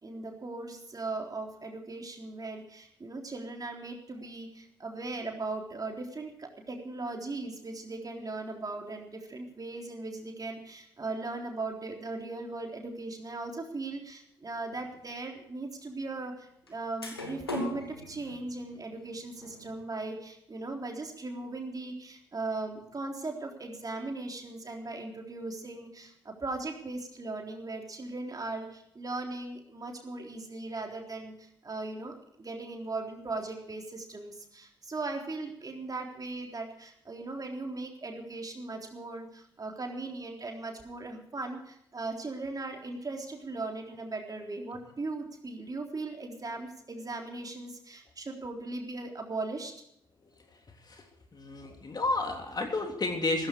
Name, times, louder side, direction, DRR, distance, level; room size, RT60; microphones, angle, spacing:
voice 1, 0.0-49.7, right 3 dB, 30° right, 2 dB, 3.7 m, -38 dB
sound 1, 14.7-14.9 16.7-16.8 17.0-19.8, left 1 dB, 90° left, 1.7 m, -39 dB
voice 2, 50.2-51.0 51.3-53.5, left 2 dB, 35° left, 3 dB, 3.3 m, -32 dB
16.5 x 14.5 x 4.6 m, 0.73 s
figure-of-eight pair, 40°, 12 cm